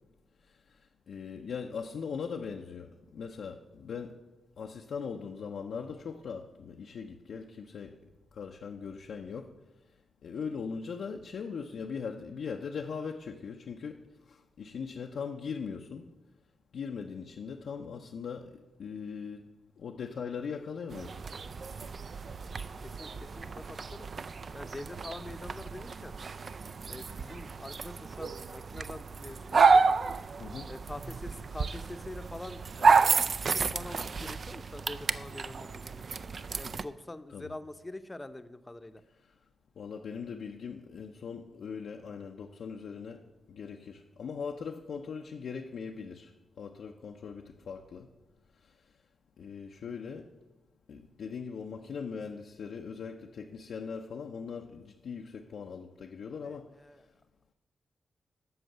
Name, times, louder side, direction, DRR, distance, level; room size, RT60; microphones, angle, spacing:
voice 1, 0.5-4.2 4.6-8.0 8.3-9.5 10.2-16.1 16.7-19.5 19.8-21.2 30.4-30.7 37.3-37.5 39.8-46.3 46.6-48.1 48.6-48.7 49.4-50.3 50.9-56.7, left 6 dB, 80° left, 0.5 m, -40 dB
sound 1, 20.9-36.8, right 4 dB, 60° right, 0.4 m, -30 dB
voice 2, 22.4-24.1 24.5-26.1 26.9-29.8 30.7-36.1 36.6-39.0 56.4-57.0, left 2 dB, 25° left, 0.7 m, -45 dB
7.9 x 5.8 x 7.6 m
cardioid pair, 55°, 0 cm